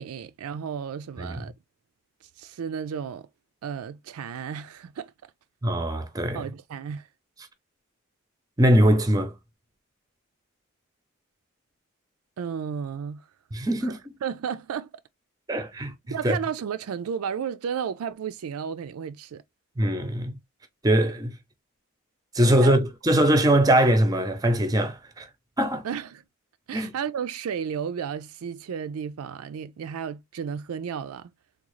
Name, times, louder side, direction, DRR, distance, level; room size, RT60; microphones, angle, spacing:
voice 1, 0.0-1.5 2.4-3.3 3.6-5.3 6.3-7.1 12.4-13.2 13.8-14.9 16.1-19.4 22.6-22.7 25.8-26.2 26.7-31.3, right 7 dB, 85° right, 0.4 m, -33 dB
voice 2, 5.6-6.5 8.6-9.3 13.5-14.1 15.5-15.9 16.2-16.4 19.8-20.3 20.8-21.3 22.3-25.3 25.6-25.8 26.7-26.9, right 1 dB, 15° right, 0.5 m, -22 dB
3.6 x 2.3 x 3.0 m
head